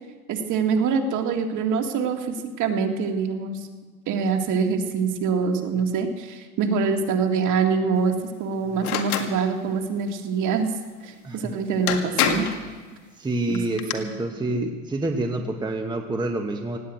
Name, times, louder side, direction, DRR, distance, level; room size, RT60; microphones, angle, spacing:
voice 1, 0.3-3.7 4.1-8.1 8.4-10.7 11.0-12.5 13.5-14.5, right 5 dB, 40° right, 4 dB, 2.2 m, -25 dB
sound 1, 8.8-9.3 11.4-11.5 11.9-12.6 13.5-13.9, left 9 dB, 80° left, 2.0 m, -25 dB
voice 2, 11.2-11.6 13.2-16.8, right 2 dB, 10° right, 3 dB, 1.1 m, -27 dB
17.5 x 8.4 x 9.2 m, 1.4 s
supercardioid pair, 120°, 43 cm